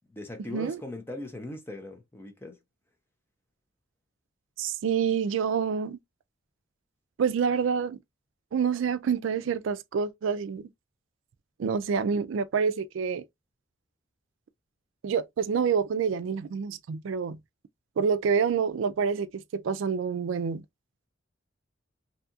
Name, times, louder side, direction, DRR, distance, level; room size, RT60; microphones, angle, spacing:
voice 1, 0.1-2.6, left 1 dB, 10° left, 0.5 m, -39 dB
voice 2, 4.6-6.0 7.2-8.0 8.5-10.7 11.6-13.2 15.0-17.4 18.0-20.6, right 6 dB, 75° right, 0.3 m, -27 dB
2.8 x 2.3 x 2.6 m
head